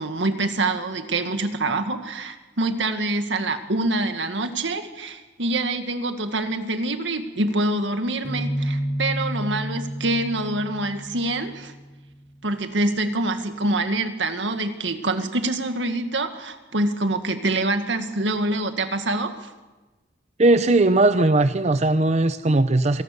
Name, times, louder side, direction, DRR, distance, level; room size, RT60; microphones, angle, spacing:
voice 1, 0.0-11.7 12.4-19.5, right 2 dB, 85° right, 7 dB, 1.9 m, -25 dB
sound 1, 8.2-11.9, equal, 30° left, 4.5 m, -30 dB
voice 2, 20.4-23.0, right 2 dB, 40° right, 11 dB, 0.7 m, -18 dB
26.0 x 18.0 x 6.8 m, 1.2 s
head